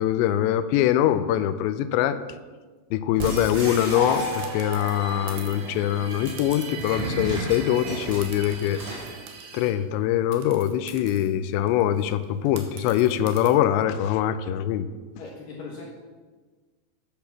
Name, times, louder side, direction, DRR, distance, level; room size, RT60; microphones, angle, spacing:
voice 1, 0.0-2.2 2.9-8.8 9.5-14.9, left 11 dB, 85° left, 11 dB, 2.7 m, -23 dB
sound 1, 3.2-4.9 5.9-9.2, right 2 dB, 30° right, 3.2 m, -34 dB
sound 2, 3.2-3.5 4.4-5.7 6.4-7.4 7.7-7.9 8.2-9.7 10.3-13.5, right 7 dB, 85° right, 3.8 m, -46 dB
sound 3, 3.9-9.7, right 3 dB, 60° right, 2.5 m, -37 dB
voice 2, 15.1-15.9, left 4 dB, 65° left, -1 dB, 2.4 m, -39 dB
10.5 x 10.0 x 5.9 m, 1.4 s
omnidirectional pair, 5.5 m